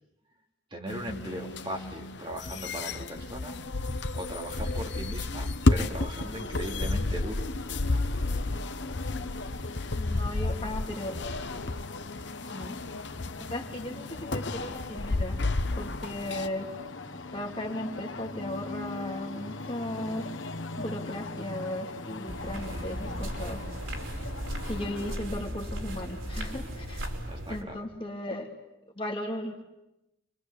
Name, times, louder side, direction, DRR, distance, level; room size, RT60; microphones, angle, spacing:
voice 1, 0.7-3.6 4.1-7.5 22.5-22.9 27.3-27.9, right 1 dB, 25° right, 1 dB, 3.3 m, -39 dB
sound 1, 0.9-16.5, left 2 dB, 60° left, 1.0 m, -31 dB
sound 2, 6.2-25.2, left 3 dB, 75° left, 1.6 m, -41 dB
voice 2, 10.0-11.2 12.4-12.7 13.4-15.4 15.8-16.7 17.3-20.3 20.8-23.6 24.6-27.1 27.5-28.5 29.0-29.6, left 1 dB, 25° left, 1 dB, 3.4 m, -36 dB
sound 3, 22.3-27.6, equal, 80° right, 4.9 m, -36 dB
29.5 x 23.5 x 8.5 m, 0.89 s
head